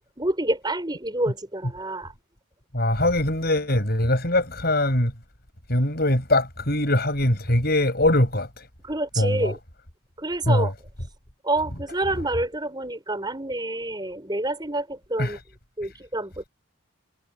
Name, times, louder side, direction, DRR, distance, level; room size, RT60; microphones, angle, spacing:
voice 1, 0.2-2.1 8.8-9.6 10.2-10.7 11.4-15.4 15.8-16.5, right 1 dB, 20° right, 6.0 m, -28 dB
voice 2, 2.7-5.1 5.7-8.7 9.2-9.5 10.5-10.7 15.2-15.4, left 1 dB, 45° left, 7.7 m, -22 dB
head